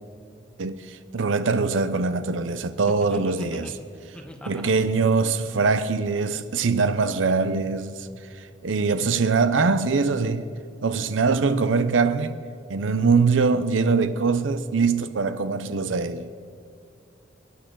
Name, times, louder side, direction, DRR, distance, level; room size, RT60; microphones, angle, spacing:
voice 1, 0.6-3.7 4.5-8.1 8.4-10.5 10.8-12.4 12.7-16.3, right 4 dB, 85° right, 0.6 m, -23 dB
voice 2, 3.1-3.9 4.1-4.7, equal, 5° left, 1.2 m, -39 dB
24.0 x 10.0 x 3.9 m
head